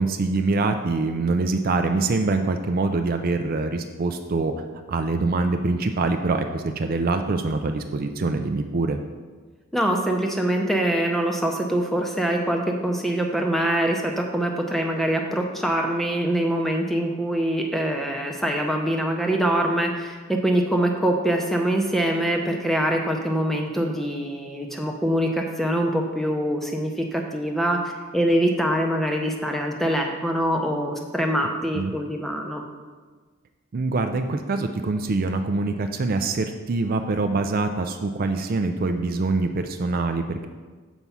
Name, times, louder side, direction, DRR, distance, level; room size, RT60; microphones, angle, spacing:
voice 1, 0.0-4.5 4.9-9.0 31.7-31.9 33.7-40.5, right 3 dB, 45° right, 6 dB, 0.4 m, -24 dB
voice 2, 9.7-27.8 28.1-32.6, right 1 dB, ahead, 2 dB, 0.6 m, -24 dB
7.1 x 4.6 x 5.5 m, 1.4 s
head